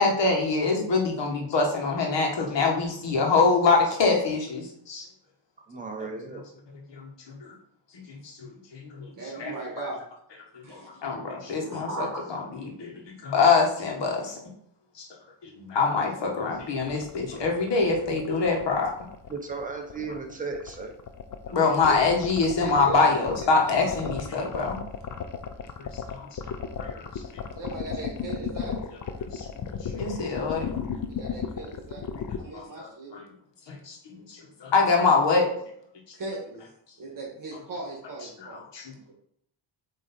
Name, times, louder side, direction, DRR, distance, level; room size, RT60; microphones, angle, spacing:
voice 1, 0.0-5.1 6.0-6.1 6.9-7.5 7.9-9.5 10.5-14.4 14.9-15.1 15.4-18.9 21.5-24.8 25.8-26.3 26.8-27.4 29.3-30.7 32.5-33.3 33.7-35.5 36.1-36.2 38.4-39.1, left 4 dB, 65° left, 0 dB, 1.6 m, -25 dB
voice 2, 5.7-6.4 19.3-20.9, right 4 dB, 15° right, 1 dB, 1.1 m, -35 dB
voice 3, 9.1-10.0 10.6-11.0 11.5-12.6 21.6-22.0 22.6-23.2 23.6-24.1 27.5-28.7 31.1-32.1 32.3-33.1 36.1-36.6 37.0-38.6 38.9-39.1, right 2 dB, 45° right, -3 dB, 1.7 m, -37 dB
sound 1, 16.5-32.4, left 7 dB, 40° left, 0.6 m, -35 dB
8.0 x 3.2 x 4.3 m, 0.69 s
wide cardioid pair, 145°, 46 cm